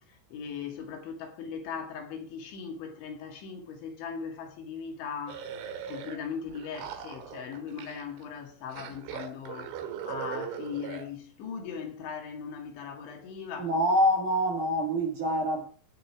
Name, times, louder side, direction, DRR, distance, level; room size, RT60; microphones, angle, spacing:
voice 1, 0.1-9.8 10.0-13.7, left 6 dB, 70° left, 4.3 m, -39 dB
sound 1, 5.3-6.2 6.5-8.2 8.7-11.1, right 8 dB, 75° right, 3.8 m, -39 dB
voice 2, 13.6-15.6, equal, 50° right, 2.8 m, -25 dB
18.0 x 6.5 x 4.8 m
omnidirectional pair, 5.7 m